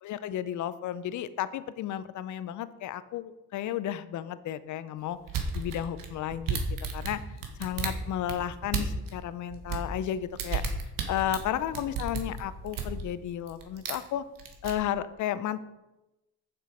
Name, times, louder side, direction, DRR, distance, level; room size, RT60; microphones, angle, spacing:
voice 1, 0.0-5.2 5.5-6.6 6.9-7.2 7.6-10.6 11.1-14.2 14.6-15.6, left 11 dB, 60° left, 15 dB, 0.6 m, -33 dB
sound 1, 5.3-9.1 9.5-13.0 13.5-14.1 14.4-14.7, right 6 dB, 70° right, 1.5 m, -33 dB
7.2 x 6.1 x 5.0 m, 0.99 s
supercardioid pair, 75°, 34 cm